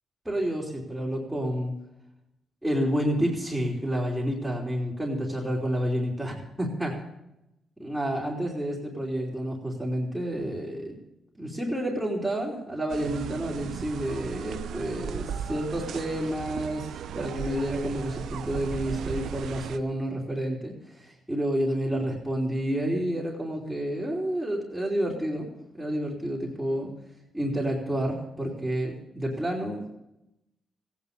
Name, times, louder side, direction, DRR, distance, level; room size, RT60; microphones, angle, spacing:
voice 1, 0.2-1.7 2.6-7.0 7.8-11.0 11.4-16.9 17.1-25.5 25.7-26.9 27.3-29.9, right 1 dB, 5° right, -5 dB, 3.3 m, -29 dB
sound 1, 12.9-19.8, right 8 dB, 80° right, 0.6 m, -36 dB
15.0 x 9.6 x 6.8 m, 0.88 s
cardioid pair, 65°, 0 cm